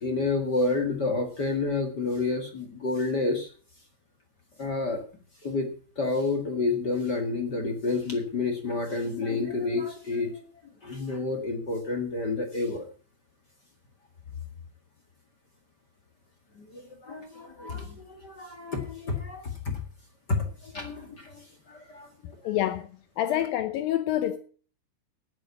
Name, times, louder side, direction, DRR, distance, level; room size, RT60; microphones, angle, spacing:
voice 1, 0.0-3.5 4.6-5.0 5.4-5.7 5.9-10.4 10.8-12.9 16.5-19.8 20.3-22.1 22.4-22.6, left 3 dB, 40° left, 1.6 m, -29 dB
voice 2, 22.4-22.9 23.2-24.4, left 12 dB, 75° left, 2.3 m, -27 dB
10.0 x 9.6 x 8.3 m
omnidirectional pair, 4.6 m